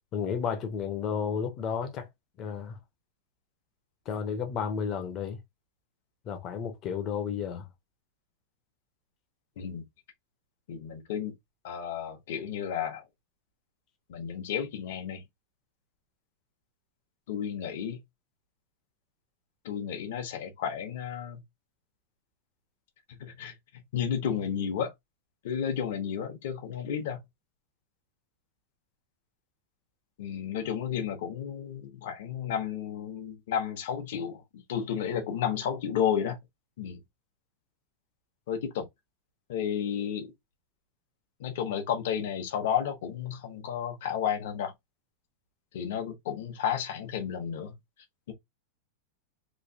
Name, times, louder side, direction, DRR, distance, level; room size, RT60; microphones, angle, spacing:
voice 1, 0.1-2.1 2.4-2.8 4.1-5.4 6.3-7.7, left 7 dB, 25° left, 0.7 m, -32 dB
voice 2, 10.7-11.3 11.6-13.0 14.1-15.2 17.3-18.0 19.6-21.4 23.2-23.5 23.9-24.9 25.4-27.2 30.2-36.4 36.8-37.0 38.5-38.8 39.5-40.3 41.4-44.7 45.7-47.7 48.3-48.4, left 8 dB, 55° left, 0.9 m, -32 dB
3.1 x 2.7 x 2.7 m
supercardioid pair, 175°, 0 cm